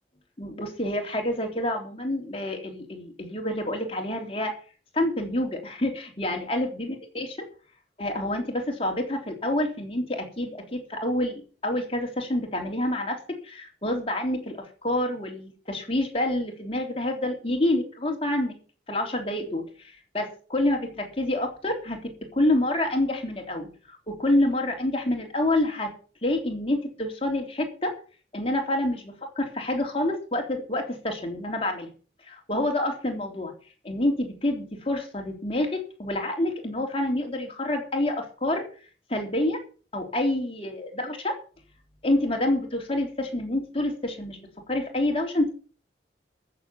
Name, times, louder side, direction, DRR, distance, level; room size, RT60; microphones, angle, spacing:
voice 1, 0.4-4.5 4.9-7.3 8.0-18.6 18.9-25.9 26.2-27.9 28.3-31.9 32.2-33.5 33.8-38.6 39.1-39.6 39.9-41.4 42.0-45.5, left 1 dB, 30° left, 2 dB, 3.5 m, -27 dB
14.0 x 7.5 x 7.0 m, 0.40 s
head